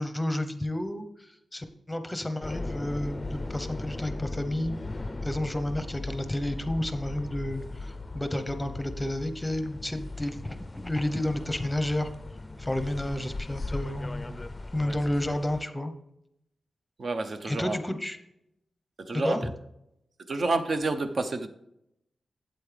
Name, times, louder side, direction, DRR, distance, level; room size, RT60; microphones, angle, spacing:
voice 1, 0.0-4.8 5.2-12.1 12.6-14.3 14.7-15.9 17.4-18.2 19.1-19.5, left 1 dB, 10° left, 0.8 m, -31 dB
sound 1, 2.4-15.6, left 2 dB, 25° left, 0.5 m, -38 dB
voice 2, 17.0-17.8 19.0-19.5 20.2-21.5, right 3 dB, 50° right, 0.7 m, -29 dB
8.5 x 7.9 x 3.3 m
wide cardioid pair, 90°, 0 cm